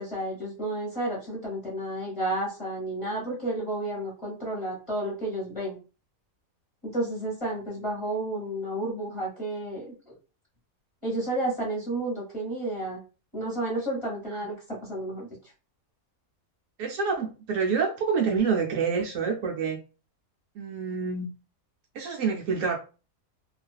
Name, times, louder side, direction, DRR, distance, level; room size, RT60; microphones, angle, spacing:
voice 1, 0.0-5.8 6.8-10.1 11.0-13.0 13.3-15.3, right 1 dB, 25° left, -4 dB, 0.9 m, -31 dB
voice 2, 16.8-19.8 20.6-21.3 21.9-22.8, right 5 dB, 70° right, 1 dB, 0.9 m, -27 dB
2.4 x 2.4 x 2.3 m, 0.33 s
omnidirectional pair, 1.5 m